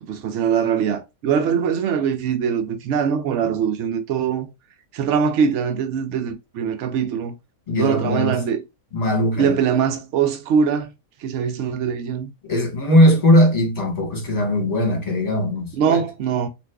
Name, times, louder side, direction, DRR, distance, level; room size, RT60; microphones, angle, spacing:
voice 1, 0.0-4.5 4.9-7.3 7.8-8.6 9.4-10.9 11.2-12.3 15.7-16.5, right 7 dB, 65° right, 0.8 m, -22 dB
voice 2, 7.7-8.4 8.9-9.6 12.5-16.0, left 1 dB, 30° left, 1.2 m, -19 dB
2.6 x 2.5 x 3.4 m
omnidirectional pair, 1.6 m